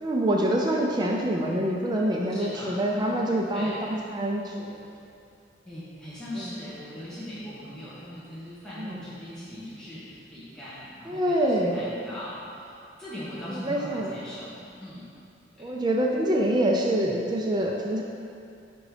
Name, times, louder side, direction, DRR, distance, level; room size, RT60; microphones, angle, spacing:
voice 1, 0.0-4.8 6.4-6.5 8.8-9.0 11.1-11.8 13.6-14.1 15.6-18.0, right 1 dB, 25° right, -1 dB, 0.4 m, -26 dB
voice 2, 2.3-4.0 5.6-15.1 15.5-15.6, left 1 dB, 5° left, -12 dB, 1.2 m, -40 dB
5.2 x 4.8 x 4.9 m, 2.5 s
head